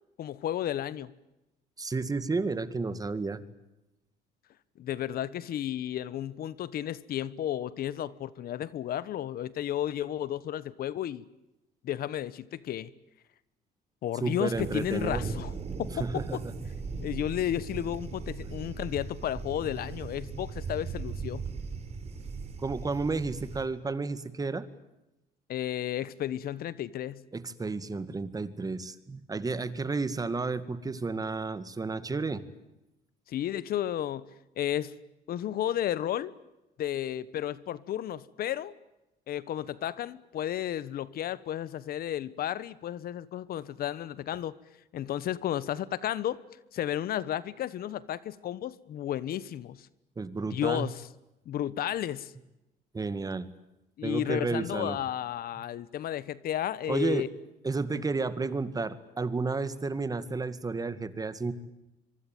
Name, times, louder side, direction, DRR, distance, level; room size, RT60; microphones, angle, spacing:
voice 1, 0.2-1.1 4.8-11.3 11.8-12.9 14.0-15.5 15.8-16.4 17.0-21.4 25.5-27.2 33.3-34.2 34.6-34.9 35.3-36.3 36.8-38.7 39.3-44.6 44.9-46.4 46.7-49.9 50.5-51.0 51.4-52.3 54.0-57.3, left 11 dB, 60° left, 19 dB, 1.2 m, -33 dB
voice 2, 1.8-3.4 14.2-15.3 16.0-16.5 22.6-24.7 27.3-32.4 50.2-50.9 52.9-53.5 54.0-55.0 56.9-57.3 57.6-61.5, right 3 dB, 20° right, 14 dB, 2.1 m, -32 dB
sound 1, 14.5-23.6, right 4 dB, 40° right, 4.6 m, -38 dB
25.0 x 23.5 x 9.3 m, 0.95 s
cardioid pair, 110°, 17 cm